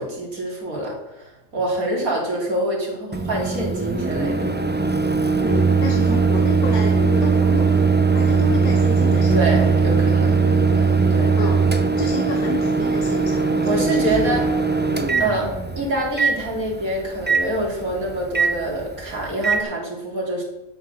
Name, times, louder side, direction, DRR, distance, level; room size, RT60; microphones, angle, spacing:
voice 1, 0.0-4.5 9.3-11.4 13.7-14.5 15.2-20.4, right 1 dB, 75° right, -2 dB, 3.8 m, -26 dB
Microwave oven, 3.1-19.6, right 4 dB, 15° right, 0.3 m, -20 dB
voice 2, 5.4-7.8 8.1-9.7 11.4-11.7 12.0-14.3 14.9-15.1, left 4 dB, 85° left, 2 dB, 1.8 m, -30 dB
12.0 x 6.5 x 6.6 m, 0.97 s
omnidirectional pair, 1.5 m